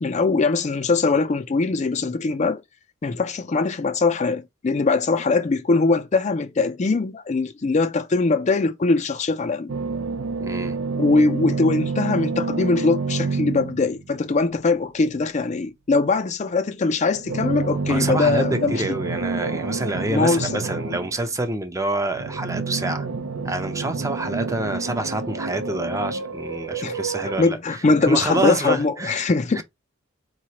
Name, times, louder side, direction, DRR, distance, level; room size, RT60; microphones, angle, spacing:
voice 1, 0.0-2.6 3.0-9.7 11.0-18.8 20.1-20.6 26.8-27.0 27.4-29.6, left 3 dB, 35° left, 0.4 m, -21 dB
sound 1, 9.7-14.2 17.1-21.3 22.1-27.4, right 4 dB, 85° right, 0.6 m, -28 dB
voice 2, 10.4-10.8 17.9-23.1 23.4-29.6, right 2 dB, 15° right, 0.6 m, -27 dB
4.7 x 3.1 x 2.9 m
head